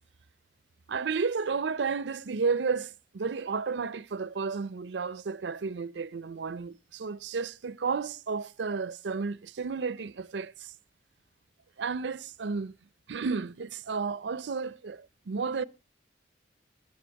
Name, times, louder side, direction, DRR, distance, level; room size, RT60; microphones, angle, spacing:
voice 1, 0.9-10.7 11.8-12.8 13.1-15.6, right 5 dB, 80° right, 0.5 m, -32 dB
13.0 x 9.8 x 4.6 m
head